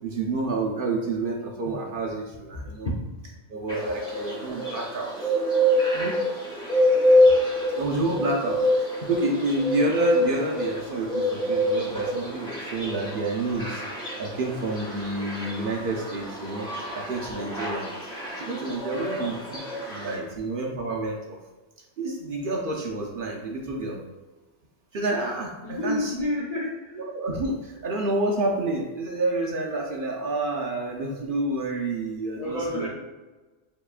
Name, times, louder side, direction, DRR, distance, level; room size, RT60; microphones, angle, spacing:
voice 1, 0.0-2.9 3.5-5.1 5.9-6.1 7.8-13.8 14.2-16.7 16.9-19.6 19.9-21.4 22.0-24.0 24.9-26.1 26.9-32.9, right 2 dB, 55° right, -1 dB, 0.7 m, -29 dB
voice 2, 2.6-2.9 25.6-27.0 32.4-32.9, left 1 dB, 45° left, -4 dB, 0.5 m, -29 dB
sound 1, 3.7-20.2, left 1 dB, 5° left, 1.3 m, -26 dB
6.7 x 2.9 x 2.4 m, 1.2 s
omnidirectional pair, 1.2 m